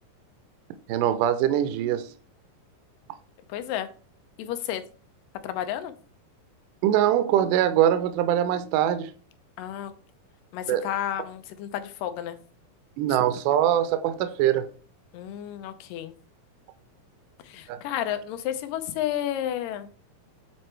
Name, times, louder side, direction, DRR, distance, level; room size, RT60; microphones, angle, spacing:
voice 1, 0.9-2.1 6.8-9.1 10.7-10.9 13.0-14.7 17.7-17.8, right 11 dB, 80° right, 2.1 m, -23 dB
voice 2, 3.5-3.9 4.4-4.8 5.4-5.9 9.6-9.9 10.5-12.4 15.1-16.1 17.4-19.9, left 11 dB, 85° left, 2.3 m, -31 dB
8.4 x 3.2 x 4.4 m
omnidirectional pair, 3.8 m